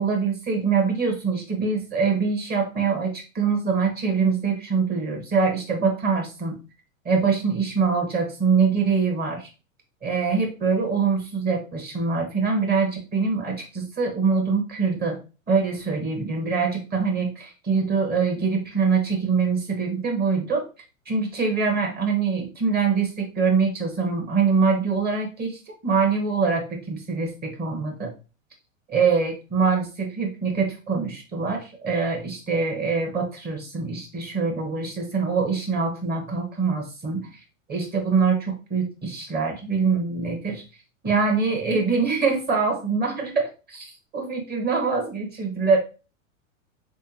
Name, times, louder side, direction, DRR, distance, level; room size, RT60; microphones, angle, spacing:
voice 1, 0.0-6.6 7.0-9.5 10.0-15.2 15.5-20.6 21.1-28.1 28.9-37.4 37.7-40.6 41.0-45.8, right 5 dB, 25° right, 1 dB, 1.4 m, -24 dB
3.5 x 3.3 x 2.9 m, 0.32 s
hypercardioid pair, 100°, 40 cm